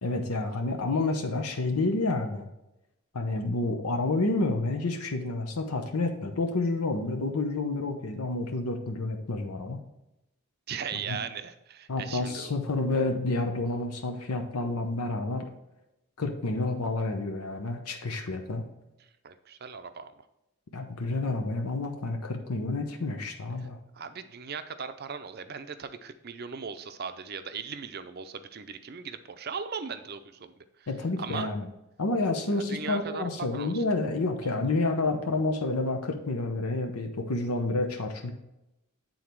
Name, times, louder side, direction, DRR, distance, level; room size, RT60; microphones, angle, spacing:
voice 1, 0.0-2.5 3.1-9.8 11.1-11.2 11.9-15.4 16.2-18.6 20.7-23.8 30.9-31.7 32.0-38.3, left 2 dB, 85° left, 4 dB, 0.9 m, -29 dB
voice 2, 10.7-12.5 19.2-20.1 23.9-30.9 31.2-31.5 32.7-33.8 34.4-34.6, right 6 dB, 45° right, 10 dB, 0.5 m, -38 dB
8.7 x 4.0 x 4.5 m, 0.90 s
head